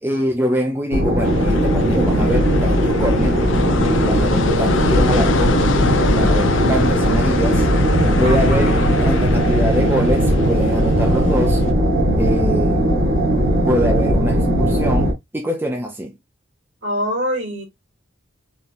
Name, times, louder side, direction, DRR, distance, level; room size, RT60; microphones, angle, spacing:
voice 1, 0.0-3.4 4.1-5.6 6.2-7.7 8.2-11.6 12.2-12.9 13.6-16.2, equal, 10° right, 0.5 m, -24 dB
sound 1, 0.9-15.1, equal, 85° right, 1.5 m, -18 dB
sound 2, 1.2-11.7, left 4 dB, 70° left, 0.5 m, -25 dB
voice 2, 8.2-8.9 16.8-17.6, equal, 60° right, 2.4 m, -25 dB
4.2 x 2.8 x 2.5 m
head